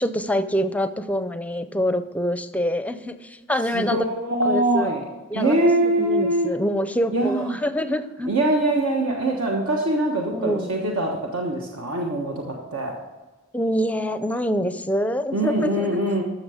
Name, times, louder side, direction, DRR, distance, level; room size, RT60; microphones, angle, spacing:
voice 1, 0.0-4.1 4.4-4.9 5.3-8.3 10.3-10.7 13.5-16.0, equal, 5° left, 11 dB, 0.5 m, -25 dB
voice 2, 3.7-5.0 5.3-6.5 7.1-7.6 8.3-12.9 15.3-16.2, right 1 dB, 80° right, -1 dB, 1.4 m, -23 dB
13.5 x 6.6 x 5.0 m, 1.2 s
head